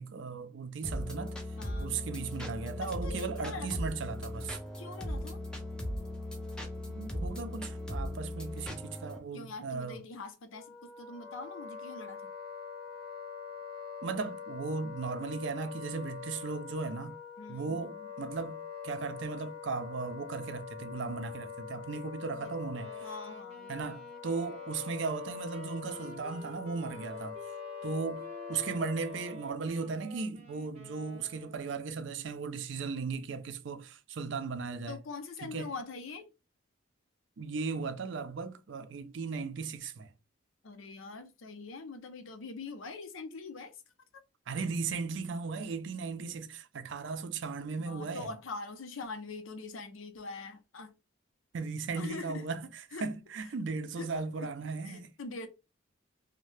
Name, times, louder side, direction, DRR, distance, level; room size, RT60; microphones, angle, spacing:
voice 1, 0.0-1.4 1.8-4.6 7.0-10.0 14.0-17.2 17.5-23.1 23.7-27.4 27.8-35.0 35.4-35.7 37.4-40.1 44.5-48.3 51.5-55.1, right 4 dB, 70° right, 0.4 m, -37 dB
sound 1, 0.8-9.2, left 1 dB, 5° left, 0.5 m, -38 dB
voice 2, 1.6-2.0 2.8-3.8 4.8-5.4 9.3-12.2 17.4-18.1 22.3-22.5 23.0-23.7 34.9-36.3 40.6-43.7 47.8-50.9 52.0-52.4 52.9-53.1 54.0-54.1 54.4-54.5 54.8-55.5, left 4 dB, 85° left, 0.6 m, -43 dB
Wind instrument woodwind instrument, 10.5-29.6, left 6 dB, 45° left, 0.6 m, -44 dB
Wind instrument woodwind instrument 2, 22.7-31.8, right 3 dB, 30° right, 0.7 m, -52 dB
2.7 x 2.1 x 3.2 m
head